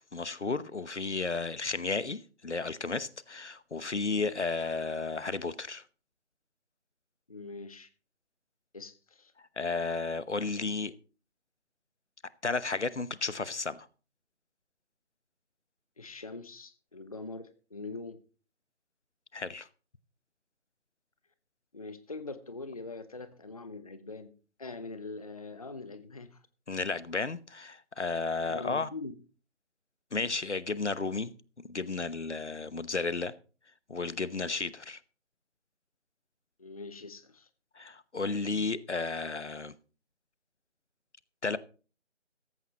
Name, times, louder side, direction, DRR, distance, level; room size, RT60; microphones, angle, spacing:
voice 1, 0.1-5.8 9.6-10.9 12.4-13.9 19.3-19.7 26.7-28.9 30.1-31.3 31.7-33.3 33.9-35.0 37.8-39.7 41.4-41.6, left 3 dB, 70° left, 17 dB, 1.0 m, -33 dB
voice 2, 7.3-7.9 8.7-9.3 16.0-18.2 21.7-24.3 24.6-26.4 28.5-29.1 36.6-37.5, left 3 dB, 30° left, 12 dB, 0.8 m, -43 dB
15.5 x 15.0 x 2.9 m, 0.37 s
figure-of-eight pair, 155°, 36 cm